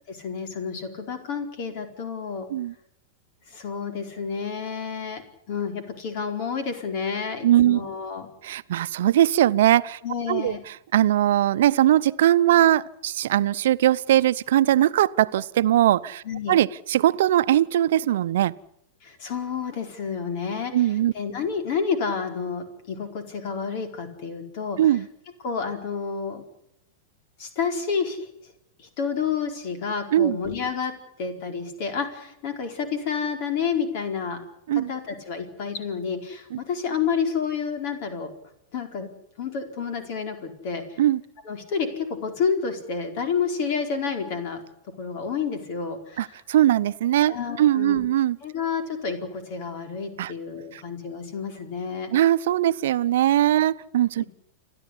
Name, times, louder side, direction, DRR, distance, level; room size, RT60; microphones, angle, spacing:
voice 1, 0.1-2.5 3.5-5.2 5.5-8.3 10.0-10.6 16.2-16.6 19.0-20.7 21.1-24.8 25.4-26.4 27.4-28.3 28.8-30.9 31.2-34.4 34.9-38.3 38.7-39.1 39.4-41.0 41.4-44.6 45.0-46.4 47.3-48.0 48.4-52.1, left 6 dB, 55° left, 6 dB, 4.6 m, -29 dB
voice 2, 7.4-7.8 8.4-10.0 10.3-18.5 20.7-21.1 24.8-25.1 30.1-30.4 34.7-34.9 36.5-36.6 41.0-41.2 46.2-48.4 50.2-50.3 50.7-50.8 52.1-54.2, right 12 dB, 70° right, 16 dB, 0.8 m, -20 dB
29.5 x 12.0 x 10.0 m, 0.77 s
hypercardioid pair, 105°, 0 cm